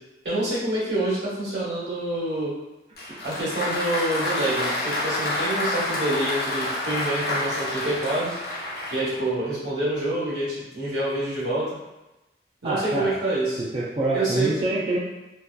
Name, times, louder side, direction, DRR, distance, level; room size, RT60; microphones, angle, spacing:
voice 1, 0.2-2.5 3.2-8.3 8.9-11.7 12.6-13.6 14.1-14.5, right 1 dB, 80° right, -7 dB, 1.1 m, -27 dB
Applause, 3.0-9.3, left 2 dB, 60° left, 0.6 m, -28 dB
voice 2, 12.6-13.1 13.6-15.0, right 2 dB, 30° right, -6 dB, 0.3 m, -26 dB
2.6 x 2.2 x 2.2 m, 1.0 s
head